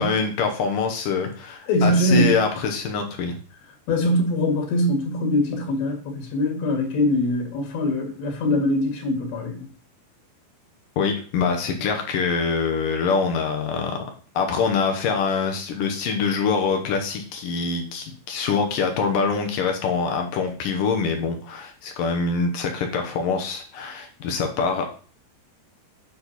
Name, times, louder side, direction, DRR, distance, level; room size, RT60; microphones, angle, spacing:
voice 1, 0.0-3.4 11.0-14.0 14.3-25.0, left 5 dB, 65° left, 4 dB, 2.4 m, -24 dB
voice 2, 1.7-2.4 3.9-9.7, left 1 dB, 85° left, 3 dB, 4.4 m, -22 dB
9.9 x 6.4 x 4.2 m, 0.40 s
omnidirectional pair, 4.9 m